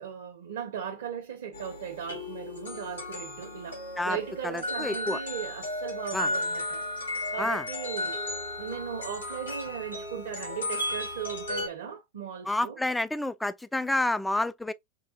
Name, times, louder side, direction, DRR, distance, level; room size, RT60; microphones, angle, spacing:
voice 1, 0.0-6.8 7.3-8.2 8.6-12.8, right 8 dB, 60° right, 0.7 m, -37 dB
sound 1, 1.5-11.7, left 1 dB, 85° left, 2.0 m, -34 dB
voice 2, 4.4-5.2 6.1-6.3 7.4-7.6 12.5-14.7, left 2 dB, 5° left, 0.3 m, -29 dB
4.6 x 2.4 x 2.6 m
figure-of-eight pair, 90°, 0 cm